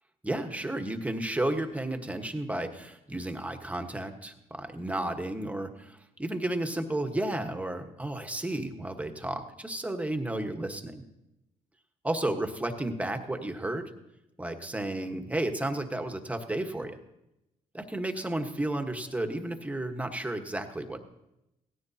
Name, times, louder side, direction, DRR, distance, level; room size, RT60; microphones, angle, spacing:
voice 1, 0.2-11.0 12.0-13.9 14.4-17.0 17.7-21.0, right 1 dB, 10° right, 6 dB, 1.3 m, -32 dB
17.0 x 14.0 x 2.8 m, 0.88 s
cardioid pair, 75°, 13 cm